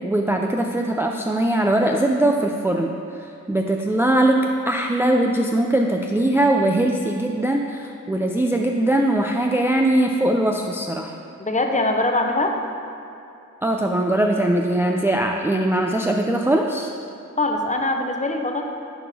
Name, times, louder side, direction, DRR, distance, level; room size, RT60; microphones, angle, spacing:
voice 1, 0.0-2.9 3.2-11.2 13.6-16.9, right 1 dB, 10° right, 1 dB, 0.3 m, -21 dB
voice 2, 11.4-12.5 17.4-18.6, left 2 dB, 25° left, 3 dB, 0.7 m, -22 dB
10.0 x 3.7 x 4.2 m, 2.7 s
cardioid pair, 65°, 32 cm